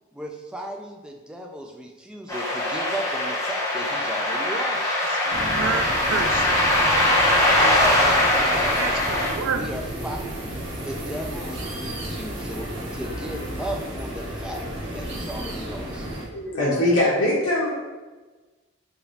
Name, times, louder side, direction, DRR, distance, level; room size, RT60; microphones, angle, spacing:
voice 1, 0.1-5.0 7.7-9.1 9.5-10.2 10.8-14.7 14.9-16.1, equal, 5° right, 1 dB, 0.4 m, -35 dB
sound 1, 2.3-9.3, left 1 dB, 15° left, 0.9 m, -21 dB
voice 2, 5.2-5.8 6.1-6.7 8.8-9.9, right 6 dB, 75° right, 7 dB, 0.3 m, -30 dB
sound 2, 5.3-16.2, right 1 dB, 60° right, 1.2 m, -33 dB
voice 3, 16.3-17.7, left 1 dB, 85° left, -6 dB, 1.1 m, -21 dB
4.8 x 2.6 x 3.2 m, 1.3 s
head